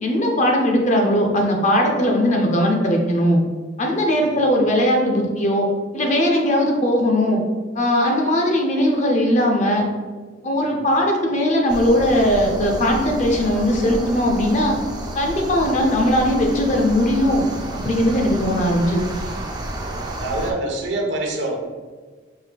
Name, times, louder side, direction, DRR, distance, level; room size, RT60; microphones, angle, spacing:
voice 1, 0.0-3.4 3.8-5.7 5.9-7.4 7.7-9.8 10.4-14.7 15.1-17.4 17.7-19.0, equal, 40° left, 1 dB, 0.6 m, -19 dB
sound 1, 11.7-20.5, right 1 dB, 20° right, 0.4 m, -31 dB
voice 2, 19.8-21.6, right 2 dB, 70° right, 1 dB, 0.7 m, -27 dB
4.5 x 2.2 x 3.4 m, 1.4 s
head